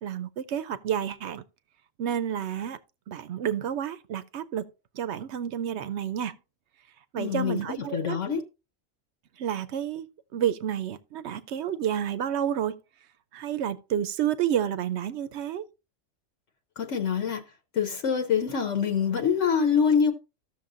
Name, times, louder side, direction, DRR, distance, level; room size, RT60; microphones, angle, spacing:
voice 1, 0.0-1.4 2.0-2.8 3.1-4.6 4.9-6.3 7.1-8.2 9.4-10.1 10.3-12.8 13.3-15.6, right 9 dB, 65° right, 0.8 m, -30 dB
voice 2, 7.2-8.4 16.8-17.4 17.7-20.1, left 7 dB, 70° left, 1.1 m, -25 dB
14.0 x 6.6 x 2.5 m
omnidirectional pair, 1.3 m